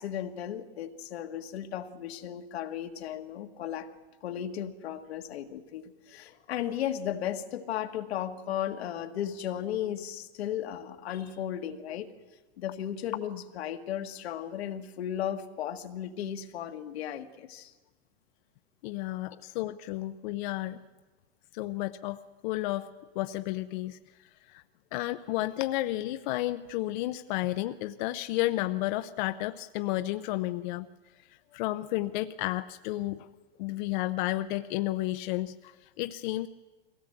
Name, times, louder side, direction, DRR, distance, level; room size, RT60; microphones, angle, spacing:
voice 1, 0.0-3.9 4.2-12.1 12.6-17.7 19.3-19.4, left 10 dB, 80° left, 6 dB, 1.7 m, -35 dB
voice 2, 18.8-20.8 21.5-22.9 23.2-24.0 24.5-24.6 24.9-30.9 31.5-33.3 33.6-36.5, left 16 dB, 50° left, 10 dB, 0.6 m, -32 dB
22.0 x 17.0 x 7.9 m, 1.2 s
supercardioid pair, 150°, 31 cm